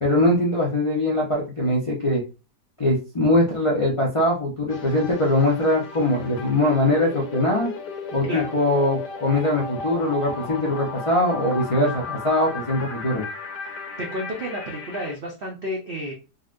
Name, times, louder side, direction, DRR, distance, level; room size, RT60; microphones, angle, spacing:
voice 1, 0.0-2.2 2.8-7.7 8.1-13.2, left 1 dB, 55° left, -4 dB, 0.3 m, -22 dB
sound 1, 4.7-15.2, left 4 dB, 85° left, 1.3 m, -35 dB
voice 2, 14.0-16.1, equal, 70° right, 0 dB, 0.5 m, -31 dB
3.9 x 2.2 x 2.4 m, 0.31 s
omnidirectional pair, 1.8 m